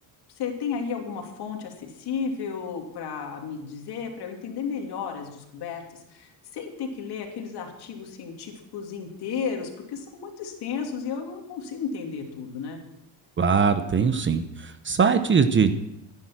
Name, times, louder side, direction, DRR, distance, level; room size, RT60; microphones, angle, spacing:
voice 1, 0.3-12.8, left 6 dB, 60° left, 2 dB, 3.1 m, -33 dB
voice 2, 13.4-15.7, right 6 dB, 25° right, 10 dB, 1.0 m, -21 dB
14.5 x 10.5 x 6.1 m, 0.81 s
cardioid pair, 115°, 43 cm